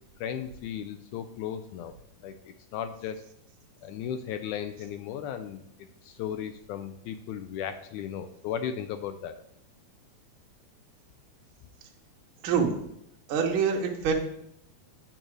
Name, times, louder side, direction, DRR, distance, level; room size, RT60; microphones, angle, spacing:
voice 1, 0.2-1.9 2.2-3.3 3.8-5.6 6.0-9.3, left 9 dB, 85° left, 9 dB, 1.8 m, -36 dB
voice 2, 12.4-12.8 13.3-14.1, right 6 dB, 80° right, 1 dB, 1.1 m, -25 dB
8.7 x 3.9 x 6.2 m, 0.72 s
omnidirectional pair, 4.0 m